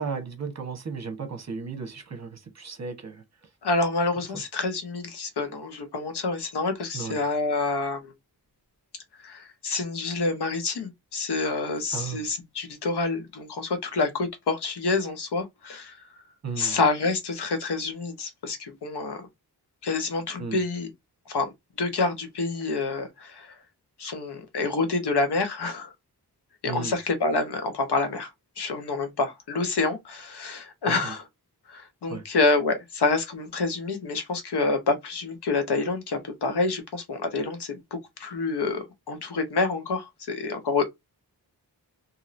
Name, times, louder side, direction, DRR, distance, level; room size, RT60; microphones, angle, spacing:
voice 1, 0.0-3.2 6.9-7.2 11.9-12.2 16.4-16.8 20.4-20.6 26.6-27.0 30.8-31.1 32.1-32.3, right 5 dB, 45° right, 1.0 m, -34 dB
voice 2, 3.6-8.1 9.2-16.0 16.6-19.3 19.8-20.9 21.3-21.5 21.8-23.5 24.0-25.9 26.6-28.3 28.6-31.2 31.7-37.8 38.2-40.9, left 3 dB, 90° left, 0.9 m, -27 dB
3.0 x 2.7 x 2.6 m
wide cardioid pair, 115°, 39 cm